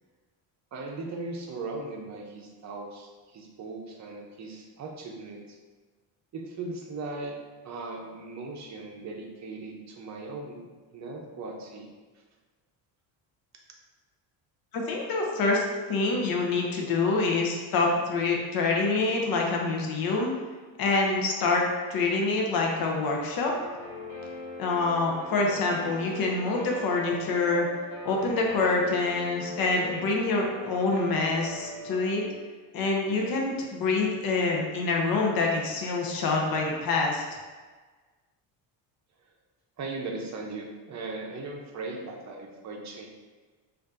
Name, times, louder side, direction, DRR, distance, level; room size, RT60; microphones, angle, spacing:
voice 1, 0.7-5.6 6.3-7.4 7.6-10.6 10.9-11.9 39.8-43.1, right 3 dB, 35° right, 0 dB, 0.7 m, -38 dB
voice 2, 14.7-20.3 20.8-23.5 24.6-27.7 28.0-32.2 32.7-37.2, left 3 dB, 50° left, 0 dB, 0.7 m, -26 dB
Guitar, 23.5-32.2, left 2 dB, 75° left, 1.2 m, -40 dB
4.2 x 2.6 x 2.5 m, 1.4 s
cardioid pair, 120°, 47 cm